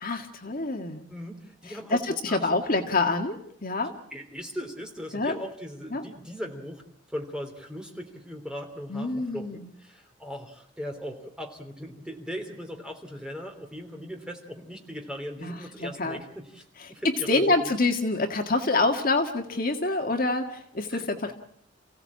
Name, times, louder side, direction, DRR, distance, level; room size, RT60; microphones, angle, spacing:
voice 1, 0.0-1.0 1.9-3.9 5.1-5.4 5.9-6.0 8.9-9.6 15.4-15.5 15.8-16.2 17.3-21.3, left 3 dB, 45° left, 4 dB, 1.8 m, -26 dB
voice 2, 1.1-2.6 3.8-6.8 7.1-17.8 20.9-21.3, equal, 5° right, 3 dB, 3.1 m, -39 dB
29.5 x 16.5 x 8.6 m, 0.70 s
head